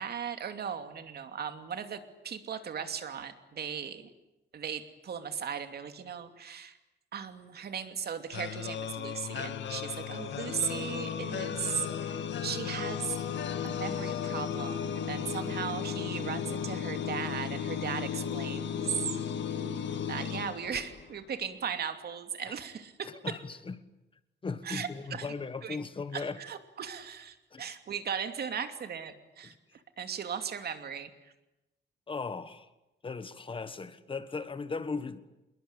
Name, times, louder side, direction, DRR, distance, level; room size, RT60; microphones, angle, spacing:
voice 1, 0.0-4.1 4.5-6.8 7.1-13.2 13.6-18.8 20.1-23.4 24.6-25.3 25.6-25.8 26.1-29.5 30.0-31.1, right 7 dB, 60° right, 2.8 m, -37 dB
sound 1, 8.3-21.2, left 8 dB, 90° left, 2.3 m, -35 dB
voice 2, 23.0-23.7 24.4-26.4 27.5-27.6 32.1-32.7 33.0-35.2, left 4 dB, 30° left, 1.4 m, -37 dB
27.5 x 22.0 x 9.9 m
wide cardioid pair, 155°, 18 cm